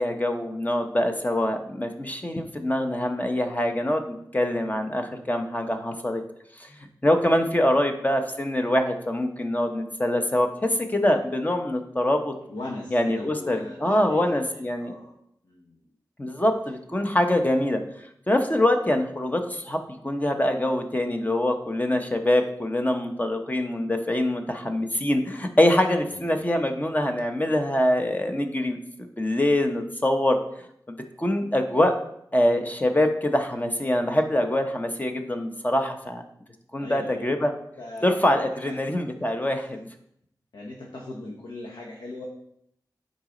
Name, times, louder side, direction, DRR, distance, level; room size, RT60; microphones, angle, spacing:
voice 1, 0.0-6.2 6.6-6.7 7.0-12.3 12.9-14.9 16.2-17.8 18.3-19.8 20.0-28.8 29.2-30.4 30.9-31.9 32.3-36.2 36.7-37.5 38.0-39.9, left 1 dB, 20° left, 5 dB, 0.9 m, -24 dB
voice 2, 7.3-7.7 12.5-15.1 15.4-15.8 26.0-26.4 36.8-37.2 37.8-38.1 38.4-38.8 39.1-39.2 39.6-39.7 40.5-42.2, left 2 dB, 85° left, -1 dB, 1.1 m, -39 dB
9.4 x 4.1 x 3.8 m, 0.73 s
wide cardioid pair, 65°, 7 cm